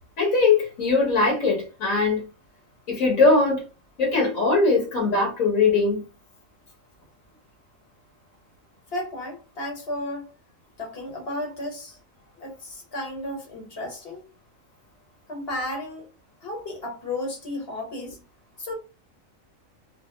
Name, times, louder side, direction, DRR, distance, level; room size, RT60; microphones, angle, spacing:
voice 1, 0.2-2.3 2.9-3.7 4.0-6.0, left 3 dB, 75° left, 1.5 m, -21 dB
voice 2, 8.9-10.3 10.8-12.0 12.4-14.2 15.3-16.1 16.4-18.2 18.6-18.7, left 1 dB, 50° left, 1.3 m, -33 dB
2.9 x 2.6 x 2.3 m
omnidirectional pair, 1.4 m